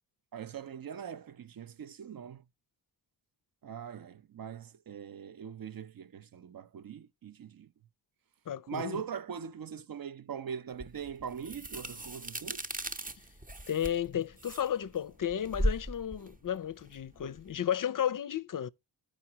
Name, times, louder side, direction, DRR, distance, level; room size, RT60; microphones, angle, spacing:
voice 1, 0.3-2.4 3.6-7.7 8.7-12.6, right 7 dB, 55° right, 0.6 m, -41 dB
voice 2, 8.5-9.0 13.7-18.7, left 9 dB, 50° left, 0.5 m, -33 dB
sound 1, 10.8-17.6, equal, 20° right, 0.7 m, -37 dB
13.5 x 5.0 x 2.8 m
cardioid pair, 70°, 42 cm